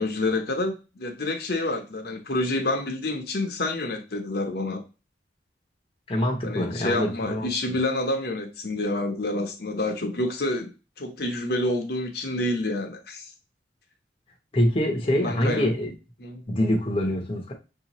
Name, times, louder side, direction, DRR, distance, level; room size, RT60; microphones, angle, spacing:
voice 1, 0.0-4.8 6.4-10.7 11.0-13.3 15.1-15.7 16.2-16.4, left 2 dB, 60° left, 4 dB, 0.8 m, -28 dB
voice 2, 6.1-7.5 14.5-15.9 16.5-17.5, left 1 dB, 30° left, 1 dB, 0.8 m, -25 dB
6.0 x 2.8 x 3.0 m, 0.30 s
head